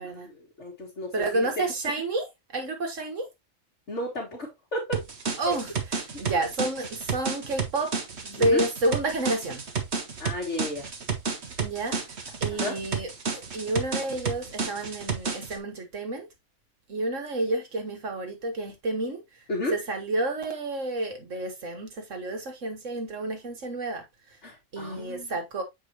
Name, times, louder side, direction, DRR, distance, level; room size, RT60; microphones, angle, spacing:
voice 1, 0.0-1.7 3.9-5.0 5.5-5.6 8.4-8.6 10.2-10.9 12.5-12.8 19.5-19.8 24.4-25.3, left 1 dB, 65° left, 2.2 m, -33 dB
voice 2, 1.1-2.3 2.5-3.3 5.4-5.7 6.2-7.9 8.2-9.6 11.6-12.0 12.4-16.3 16.9-19.2 19.7-24.0 24.7-25.6, right 2 dB, 80° right, 1.9 m, -30 dB
sound 1, 4.9-15.6, right 5 dB, 60° right, 1.5 m, -31 dB
7.3 x 4.7 x 2.9 m
omnidirectional pair, 1.3 m